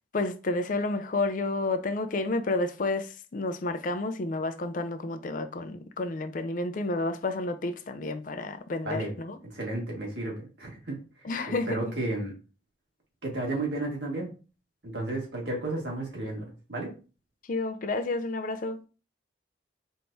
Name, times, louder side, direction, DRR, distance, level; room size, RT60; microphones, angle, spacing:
voice 1, 0.1-9.4 11.2-11.9 17.4-18.9, left 2 dB, 50° left, 0.5 m, -30 dB
voice 2, 9.4-11.0 11.5-12.3 13.2-14.3 14.8-16.9, right 2 dB, 75° right, 1.7 m, -33 dB
4.5 x 3.6 x 2.6 m
head